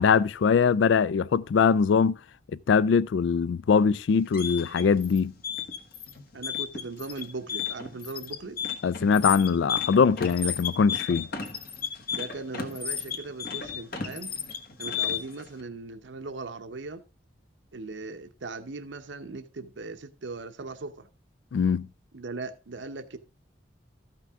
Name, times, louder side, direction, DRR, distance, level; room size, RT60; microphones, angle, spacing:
voice 1, 0.0-2.2 2.7-5.3 8.8-11.3 21.5-21.9, left 6 dB, 85° left, 0.4 m, -22 dB
sound 1, 4.1-15.4, left 7 dB, 55° left, 1.3 m, -33 dB
voice 2, 6.3-8.6 12.1-14.3 14.8-17.0 17.7-21.1 22.1-23.2, right 3 dB, 85° right, 0.8 m, -39 dB
13.5 x 5.9 x 3.5 m
head